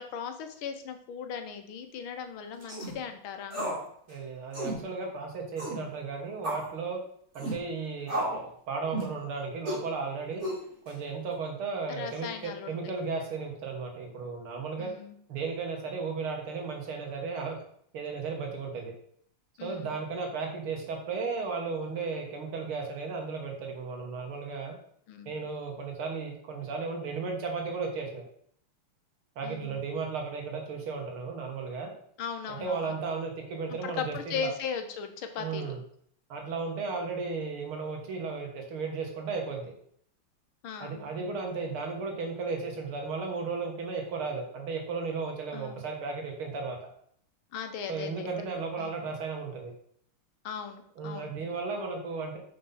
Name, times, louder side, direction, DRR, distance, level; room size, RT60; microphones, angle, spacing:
voice 1, 0.0-3.6 11.9-12.8 14.8-15.2 19.6-20.0 25.1-25.3 29.4-29.7 32.2-32.9 33.7-35.7 40.6-41.0 45.5-45.8 47.5-48.3 48.8-49.0 50.4-51.3, left 7 dB, 75° left, 6 dB, 1.6 m, -38 dB
sound 1, 2.6-2.9 3.5-3.8 4.1-4.2 4.5-4.8 5.6-5.8 6.4-6.7 7.3-7.6 8.1-8.5 8.9-9.2 9.6-9.8 10.4-10.9, right 1 dB, 30° right, 3.1 m, -33 dB
voice 2, 4.1-7.0 7.3-8.3 8.7-10.4 10.9-14.9 15.3-17.6 17.9-18.9 19.6-24.7 25.3-28.2 29.4-31.9 32.5-34.5 35.4-35.8 36.3-39.7 40.8-46.8 47.9-49.7 51.0-52.4, right 4 dB, 75° right, 2 dB, 2.4 m, -35 dB
5.8 x 5.2 x 5.5 m, 0.64 s
omnidirectional pair, 2.4 m